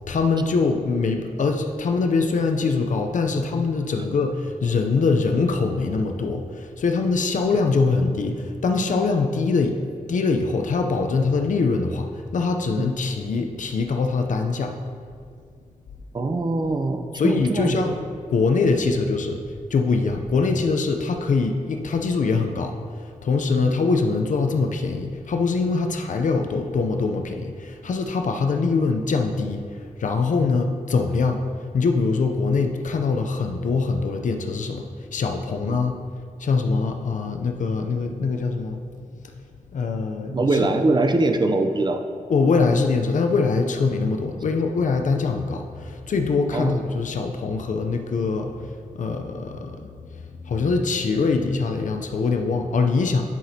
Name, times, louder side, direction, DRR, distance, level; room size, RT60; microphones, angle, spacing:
voice 1, 0.1-9.8 10.1-14.7 17.1-18.0 18.3-31.4 31.7-36.0 36.4-38.8 39.2-39.4 39.7-40.7 42.3-53.2, left 4 dB, 70° left, 4 dB, 0.6 m, -23 dB
voice 2, 16.1-17.8 35.7-35.8 40.3-42.0 46.5-46.8, right 2 dB, 35° right, 6 dB, 0.5 m, -22 dB
10.5 x 6.0 x 2.8 m, 2.1 s
wide cardioid pair, 125°, 13 cm